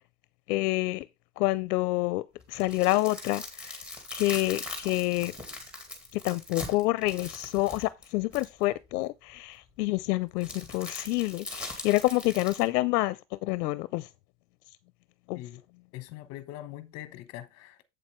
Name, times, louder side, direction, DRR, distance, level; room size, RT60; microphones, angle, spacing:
voice 1, 0.5-1.1 1.4-2.2 2.5-3.8 4.1-5.3 6.1-14.1 15.3-15.4, left 19 dB, 70° left, 0.7 m, -28 dB
sound 1, 2.4-8.6 10.4-12.6, left 2 dB, ahead, 2.1 m, -41 dB
voice 2, 15.9-17.9, left 14 dB, 30° left, 1.1 m, -42 dB
8.3 x 7.4 x 3.2 m
supercardioid pair, 175°, 49 cm